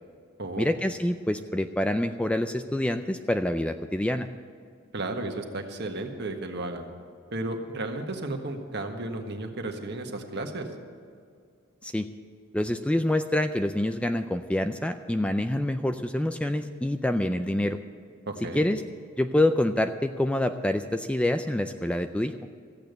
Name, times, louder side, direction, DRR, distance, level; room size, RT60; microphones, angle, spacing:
voice 1, 0.6-4.3 11.8-12.1 12.5-17.8 18.6-18.8 19.2-22.3, left 1 dB, 5° left, 8 dB, 0.3 m, -26 dB
voice 2, 4.9-6.8 7.3-10.7 18.3-18.7, right 2 dB, 55° right, 4 dB, 1.5 m, -33 dB
14.5 x 8.7 x 7.9 m, 2.2 s
head